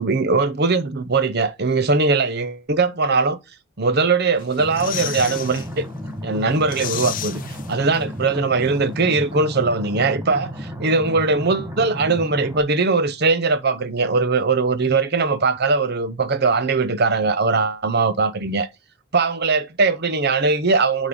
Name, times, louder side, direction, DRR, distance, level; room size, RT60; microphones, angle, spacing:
voice 1, 0.0-3.4 3.8-5.8 6.2-7.4 7.7-18.7 19.1-21.1, right 3 dB, 50° right, 0.8 m, -20 dB
sound 1, 4.4-5.7 6.1-6.2 6.5-8.2 8.5-8.6, left 11 dB, 40° left, 0.7 m, -32 dB
sound 2, 4.6-12.6, equal, 15° right, 1.3 m, -33 dB
9.6 x 5.2 x 3.8 m
head